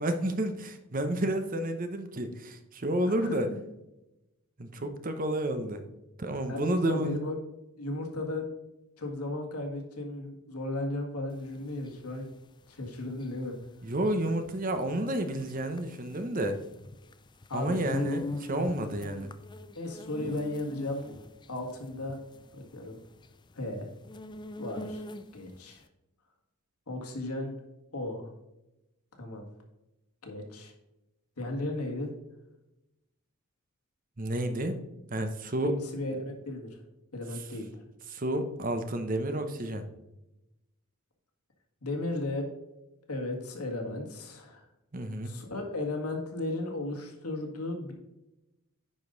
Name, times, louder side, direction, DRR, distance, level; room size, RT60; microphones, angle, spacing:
voice 1, 0.0-3.5 4.6-5.8 6.2-7.2 13.8-16.6 17.5-19.3 34.2-34.8 35.1-35.8 38.1-39.8 44.9-45.3, right 1 dB, 40° right, 8 dB, 0.8 m, -30 dB
voice 2, 3.1-3.6 4.8-4.9 6.5-7.4 7.8-8.5 9.0-12.3 12.7-13.6 17.5-17.9 19.7-21.2 21.5-22.2 22.5-23.0 23.5-23.9 24.6-25.0 25.3-25.8 26.9-27.5 27.9-28.3 29.2-29.5 30.2-30.7 31.4-32.1 35.6-36.8 37.1-37.8 41.8-42.5 43.1-44.7 45.2-47.9, left 2 dB, 85° left, 2 dB, 1.8 m, -35 dB
sound 1, 11.4-25.6, left 2 dB, 20° left, 0.3 m, -41 dB
9.6 x 5.2 x 3.9 m, 0.93 s
head